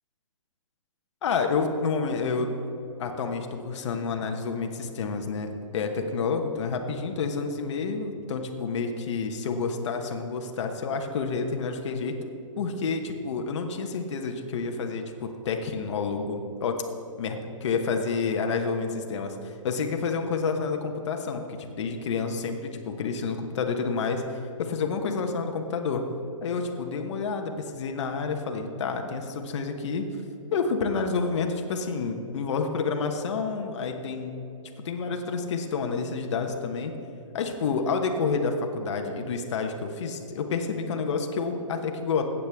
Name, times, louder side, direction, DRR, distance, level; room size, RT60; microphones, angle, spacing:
voice 1, 1.2-2.5 3.0-12.1 12.6-16.8 17.2-26.0 26.4-30.1 30.5-34.4 34.8-37.0 37.3-42.2, left 5 dB, 55° left, 4 dB, 1.1 m, -29 dB
15.0 x 8.5 x 3.5 m, 2.8 s
hypercardioid pair, 140°, 17 cm